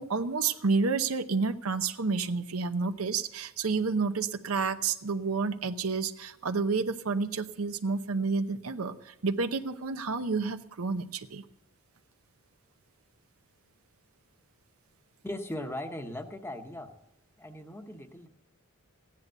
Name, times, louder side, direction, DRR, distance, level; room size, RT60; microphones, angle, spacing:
voice 1, 0.0-11.4, right 4 dB, 80° right, 9 dB, 0.8 m, -30 dB
voice 2, 15.2-16.9 17.4-18.3, left 1 dB, 10° left, 6 dB, 1.0 m, -38 dB
15.5 x 10.5 x 6.7 m, 0.88 s
head